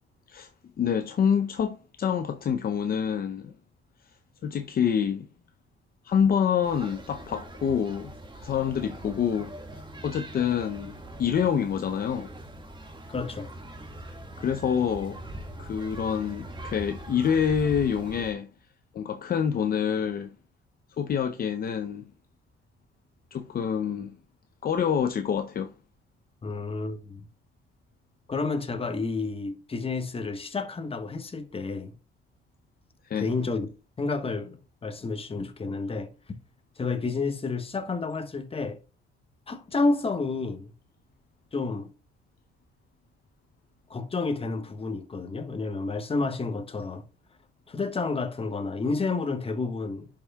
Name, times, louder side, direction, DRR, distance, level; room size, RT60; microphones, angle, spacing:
voice 1, 0.8-3.5 4.4-5.3 6.0-9.5 10.0-12.3 14.0-14.1 14.4-15.2 15.6-18.5 18.9-20.3 21.0-22.0 23.3-24.1 24.6-25.7 33.0-33.3, left 7 dB, 50° left, 0.6 m, -27 dB
sound 1, 6.6-18.3, right 1 dB, 25° right, 1.7 m, -42 dB
voice 2, 13.1-13.5 26.4-27.2 28.3-31.9 33.2-33.7 34.0-36.1 36.8-38.8 39.5-40.7 41.5-41.9 43.9-47.0 47.7-50.1, left 3 dB, 30° left, 1.3 m, -30 dB
11.0 x 5.8 x 2.3 m
cardioid pair, 90°, 20 cm